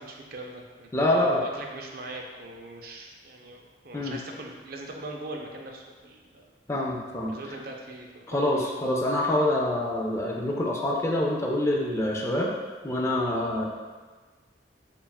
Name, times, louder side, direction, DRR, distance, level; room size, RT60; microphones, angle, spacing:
voice 1, 0.0-6.5 7.2-8.7, right 2 dB, 55° right, 1 dB, 0.5 m, -41 dB
voice 2, 0.9-1.4 3.9-4.2 6.7-7.3 8.3-12.5 12.8-13.6, left 1 dB, 15° left, -1 dB, 0.4 m, -26 dB
6.9 x 2.4 x 2.3 m, 1.4 s
head